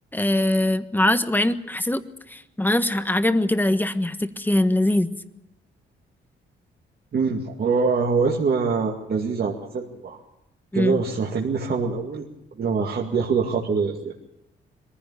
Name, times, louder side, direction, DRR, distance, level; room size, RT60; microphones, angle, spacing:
voice 1, 0.1-2.0 2.3-5.1 10.7-11.0, left 1 dB, 10° left, 10 dB, 1.4 m, -22 dB
voice 2, 7.1-10.2 10.7-12.2 12.6-14.1, right 5 dB, 55° right, -1 dB, 2.2 m, -24 dB
22.0 x 15.5 x 8.5 m, 0.87 s
cardioid pair, 95°, 19 cm